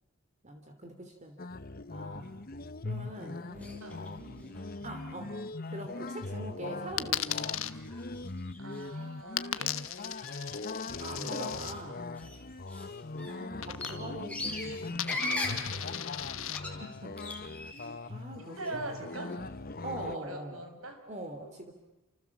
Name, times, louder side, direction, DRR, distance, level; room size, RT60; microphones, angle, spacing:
voice 1, 0.4-1.4 1.9-2.4 2.8-4.6 4.8-5.4 5.7-7.7 11.0-12.0 12.7-12.9 13.3-16.1 16.8-17.2 18.1-19.4 19.8-20.6 21.1-21.7, right 1 dB, 35° right, 5 dB, 3.1 m, -43 dB
sound 1, 1.4-20.2, left 3 dB, 45° left, 1.0 m, -40 dB
sound 2, 3.6-4.1 4.4-5.0 5.6-5.7 6.1-6.3 6.8-6.9 7.4-7.5 7.7-9.0 9.8-11.3 11.6-11.8 12.1-18.1 18.4-19.3, left 2 dB, 5° left, 4.5 m, -41 dB
Coin (dropping), 7.0-7.7 9.4-11.7 13.6-14.2 14.5-16.6, left 12 dB, 75° left, 1.2 m, -36 dB
voice 2, 8.6-9.8 18.4-19.3 20.0-21.0 21.3-21.5, right 2 dB, 85° right, 6 dB, 6.1 m, -42 dB
29.0 x 27.5 x 7.3 m, 0.94 s
head